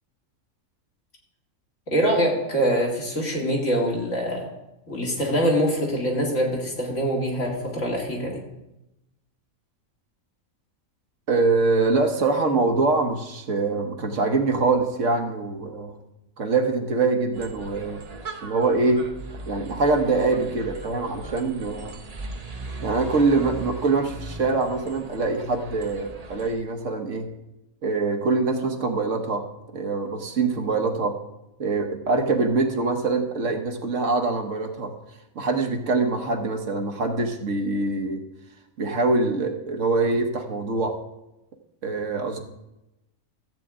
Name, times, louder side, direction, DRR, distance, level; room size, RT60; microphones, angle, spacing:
voice 1, 1.9-4.5 4.9-8.4, equal, 65° left, -2 dB, 2.7 m, -24 dB
voice 2, 11.3-15.9 16.4-18.0 18.4-19.1 19.5-22.0 22.8-27.3 27.8-29.5 29.7-31.2 31.6-34.9 35.3-38.2 38.8-41.0 41.8-42.4, right 3 dB, 65° right, 4 dB, 1.4 m, -24 dB
sound 1, 17.3-26.6, right 2 dB, 35° right, 0.8 m, -38 dB
14.0 x 8.2 x 3.7 m, 0.92 s
omnidirectional pair, 1.4 m